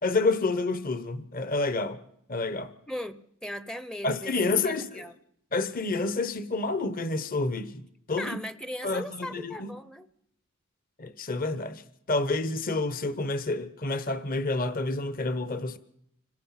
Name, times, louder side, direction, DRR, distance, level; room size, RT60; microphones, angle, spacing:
voice 1, 0.0-2.0 2.3-2.7 4.0-5.0 5.5-8.4 8.8-9.7 11.0-11.8 12.1-15.8, left 3 dB, 40° left, 1.1 m, -29 dB
voice 2, 2.9-4.4 4.6-5.1 8.2-10.1, left 1 dB, 5° left, 0.7 m, -38 dB
26.0 x 18.0 x 5.8 m
head